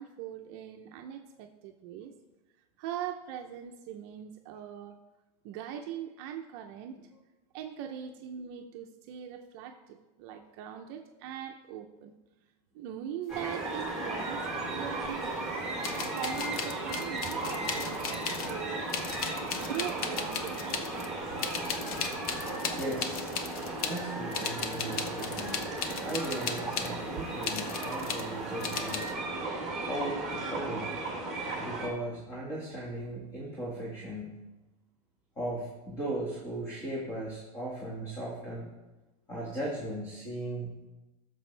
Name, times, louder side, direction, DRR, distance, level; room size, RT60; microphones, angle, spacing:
voice 1, 0.0-2.1 2.8-5.0 5.4-7.0 7.5-12.2 12.7-14.4 14.7-15.2 15.5-15.7 16.1-18.9 19.6-21.4 23.4-23.5 27.2-27.3, right 9 dB, 45° right, 4 dB, 0.7 m, -41 dB
sound 1, 13.3-31.9, right 2 dB, ahead, 2.8 m, -36 dB
sound 2, 15.0-15.1 15.8-18.6 18.9-21.1 21.4-24.0 24.3-26.9 27.4-28.3 28.6-29.1, left 6 dB, 85° left, 1.1 m, -36 dB
voice 2, 22.7-23.3 23.8-25.6 26.0-29.1 29.8-30.9 31.6-34.4 35.4-38.7 39.3-40.8, right 1 dB, 15° left, -4 dB, 1.6 m, -37 dB
14.5 x 6.8 x 3.3 m, 1.1 s
supercardioid pair, 160°, 18 cm